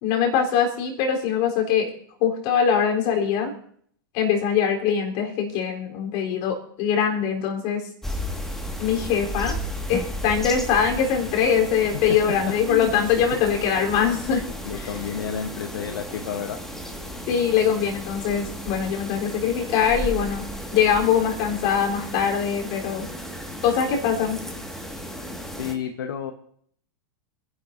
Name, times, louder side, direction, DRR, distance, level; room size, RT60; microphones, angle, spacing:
voice 1, 0.0-1.9 2.2-3.6 4.1-7.9 8.8-9.6 9.9-14.4 14.8-14.9 17.3-20.4 20.7-23.1 23.6-24.4, left 7 dB, 50° left, 1 dB, 3.9 m, -22 dB
sound 1, 8.0-25.7, equal, 5° left, 1.9 m, -34 dB
voice 2, 14.6-16.6 25.6-26.3, left 8 dB, 75° left, 5 dB, 1.1 m, -30 dB
27.5 x 11.0 x 2.7 m, 0.62 s
hypercardioid pair, 105°, 12 cm